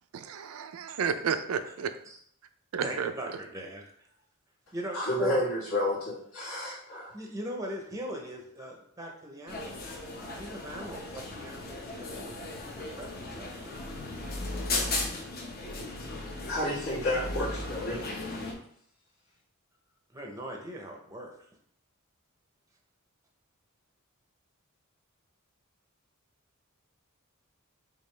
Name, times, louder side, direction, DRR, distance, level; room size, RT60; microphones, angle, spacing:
voice 1, 0.1-1.9 2.7-3.1, right 6 dB, 70° right, 10 dB, 0.4 m, -31 dB
voice 2, 2.8-3.9 4.7-5.4 7.1-9.8 10.1-14.1 20.1-21.3, right 1 dB, 15° right, 1 dB, 0.6 m, -40 dB
voice 3, 4.9-7.1 16.1-18.0 18.3-18.4, left 1 dB, 65° left, -6 dB, 1.6 m, -31 dB
sound 1, 9.5-18.5, left 2 dB, 45° left, 0.7 m, -36 dB
5.1 x 2.4 x 3.2 m, 0.64 s
head